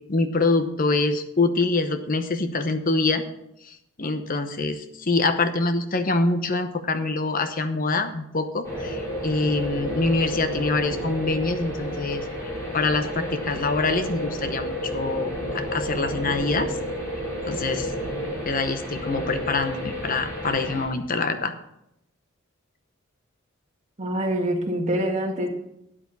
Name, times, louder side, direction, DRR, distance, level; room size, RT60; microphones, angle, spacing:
voice 1, 0.1-3.2 3.7-12.2 12.7-16.7 17.5-17.9 18.5-21.5, left 3 dB, 45° left, 9 dB, 0.9 m, -25 dB
sound 1, 8.6-20.9, equal, 15° left, 3.7 m, -31 dB
voice 2, 24.0-25.5, right 1 dB, 35° right, 1 dB, 1.8 m, -25 dB
13.0 x 8.9 x 4.1 m, 0.80 s
head